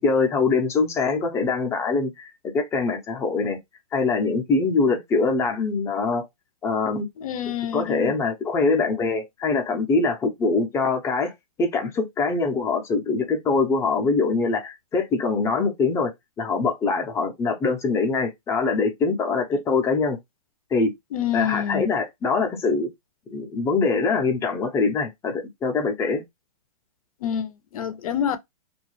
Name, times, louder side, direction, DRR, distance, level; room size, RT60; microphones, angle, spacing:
voice 1, 0.0-3.6 3.9-6.3 6.6-7.1 7.7-11.3 11.6-20.2 20.7-20.9 21.3-22.9 23.3-26.2, left 4 dB, 15° left, 0.6 m, -23 dB
voice 2, 7.2-8.1 21.1-21.9 27.2-28.4, left 9 dB, 65° left, 0.6 m, -27 dB
2.4 x 2.1 x 3.0 m
hypercardioid pair, 140°, 19 cm